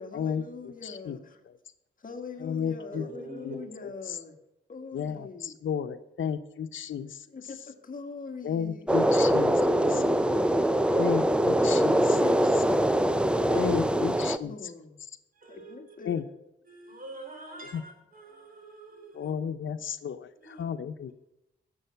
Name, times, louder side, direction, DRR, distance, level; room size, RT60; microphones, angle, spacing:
voice 1, 0.0-1.4 2.0-4.3 4.7-5.6 7.3-8.9 9.6-11.0 12.2-15.0 15.5-16.1, left 4 dB, 45° left, 1.7 m, -42 dB
voice 2, 0.8-1.2 2.4-3.1 3.4-4.2 4.9-7.3 8.4-9.6 9.9-10.0 10.9-12.2 13.5-14.5 16.1-16.2 17.7-17.8 19.1-21.1, left 8 dB, 90° left, 0.8 m, -33 dB
voice 3, 2.9-3.6 10.9-11.0 15.3-16.1 16.7-19.3 20.4-20.6, right 1 dB, 45° right, 4.1 m, -45 dB
sound 1, 8.9-14.4, right 1 dB, 5° right, 0.5 m, -23 dB
18.5 x 7.5 x 5.8 m
wide cardioid pair, 140°, 20 cm